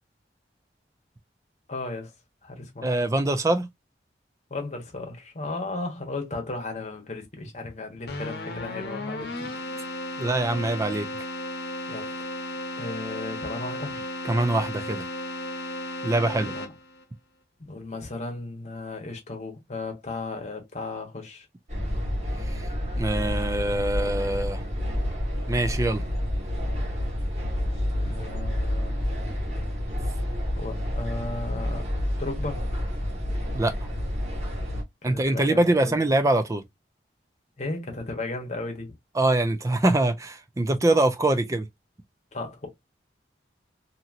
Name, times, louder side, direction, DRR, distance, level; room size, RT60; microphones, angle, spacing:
voice 1, 1.7-2.1 2.4-2.9 4.5-9.5 11.9-12.3 12.8-14.0 16.3-16.7 17.6-21.5 28.0-29.0 30.5-31.9 32.2-32.6 35.0-36.1 37.6-38.9 42.3-42.7, left 2 dB, 40° left, 1.0 m, -35 dB
voice 2, 2.8-3.7 10.2-11.1 14.2-15.1 16.0-16.5 22.5-22.7 23.0-24.6 25.5-26.0 33.5-33.7 35.0-36.6 39.1-41.7, right 2 dB, 15° right, 0.3 m, -24 dB
Keyboard (musical), 8.1-17.0, left 1 dB, 60° left, 0.8 m, -34 dB
sound 1, 21.7-34.8, left 1 dB, 40° right, 1.5 m, -29 dB
2.9 x 2.8 x 2.5 m
head